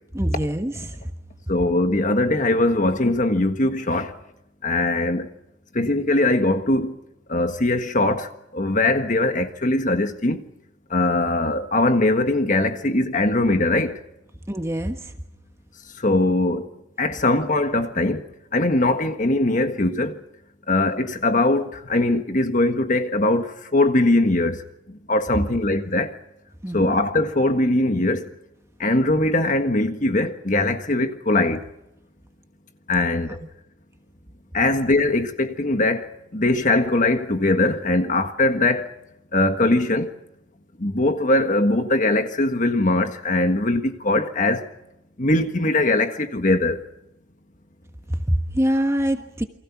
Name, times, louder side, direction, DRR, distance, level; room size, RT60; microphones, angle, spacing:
voice 1, 0.1-1.1 14.5-15.1 26.6-26.9 48.1-49.4, equal, 15° right, 1.2 m, -24 dB
voice 2, 1.5-4.1 4.6-5.3 5.7-7.0 7.3-10.5 10.9-14.0 16.0-16.7 17.0-20.2 20.7-24.6 25.1-26.1 26.7-28.3 28.8-31.6 32.9-33.4 34.5-38.9 39.3-40.1 40.8-44.7 45.2-46.8, left 2 dB, 40° left, 1.5 m, -21 dB
29.0 x 24.0 x 6.0 m
head